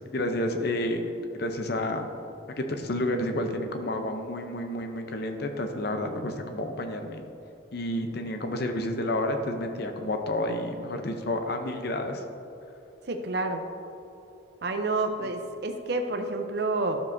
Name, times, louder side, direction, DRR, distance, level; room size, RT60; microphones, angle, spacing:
voice 1, 0.1-2.1 2.6-7.2 7.7-12.2 15.2-15.3, left 1 dB, 55° left, 5 dB, 0.7 m, -30 dB
voice 2, 13.1-13.6 14.6-17.0, right 2 dB, 55° right, 5 dB, 0.6 m, -29 dB
11.5 x 7.2 x 2.7 m, 2.9 s
head